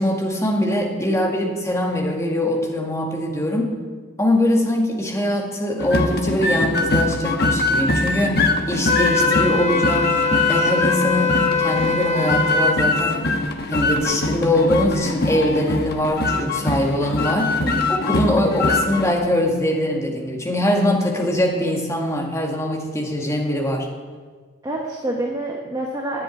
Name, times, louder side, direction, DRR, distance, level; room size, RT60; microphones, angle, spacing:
voice 1, 0.0-3.7 4.2-10.2 10.5-13.2 13.7-17.5 17.9-23.9, left 1 dB, 15° left, -1 dB, 2.0 m, -22 dB
sound 1, 5.8-19.1, left 2 dB, 50° left, 1.1 m, -22 dB
Wind instrument woodwind instrument, 8.9-12.8, left 4 dB, 30° left, 0.7 m, -22 dB
voice 2, 17.6-17.9 24.6-26.2, right 1 dB, 20° right, -1 dB, 1.3 m, -27 dB
10.5 x 8.2 x 9.8 m, 1.5 s
head